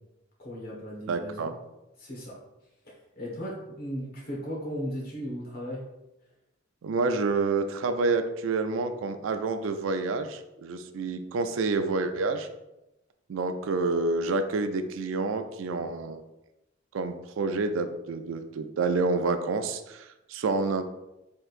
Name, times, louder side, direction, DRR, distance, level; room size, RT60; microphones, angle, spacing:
voice 1, 0.4-1.5 2.0-2.4 3.1-5.8, equal, 50° left, -3 dB, 1.4 m, -36 dB
voice 2, 1.1-1.5 6.8-12.5 13.3-16.2 16.9-20.8, right 3 dB, 80° right, 8 dB, 0.4 m, -28 dB
4.4 x 3.7 x 2.5 m, 0.92 s
head